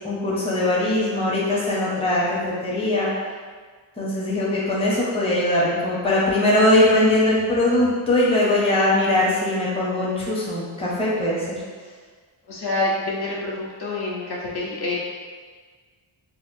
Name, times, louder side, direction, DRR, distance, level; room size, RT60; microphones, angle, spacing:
voice 1, 0.0-3.1 4.0-11.6, left 1 dB, 10° left, -6 dB, 0.6 m, -21 dB
voice 2, 12.5-15.0, left 2 dB, 55° left, -4 dB, 0.8 m, -27 dB
4.3 x 2.1 x 2.6 m, 1.6 s
wide cardioid pair, 105°, 47 cm